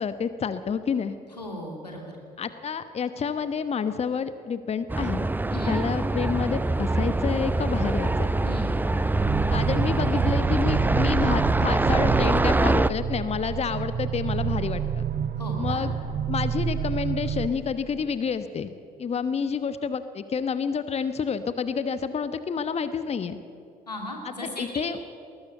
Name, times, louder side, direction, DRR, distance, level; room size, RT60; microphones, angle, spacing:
voice 1, 0.0-1.2 2.4-5.3 5.5-8.3 9.5-15.1 15.6-15.9 16.3-18.7 19.0-23.4 24.2-25.0, left 6 dB, 30° left, 12 dB, 1.0 m, -29 dB
voice 2, 1.4-2.1 5.5-5.8 8.4-8.8 15.4-15.9 23.9-24.9, left 1 dB, 85° left, 1 dB, 2.8 m, -36 dB
sound 1, 4.9-12.9, right 2 dB, 10° right, 0.6 m, -24 dB
sound 2, 9.1-17.5, right 8 dB, 45° right, 1.4 m, -29 dB
20.0 x 19.5 x 8.1 m, 2.5 s
figure-of-eight pair, 50°, 20 cm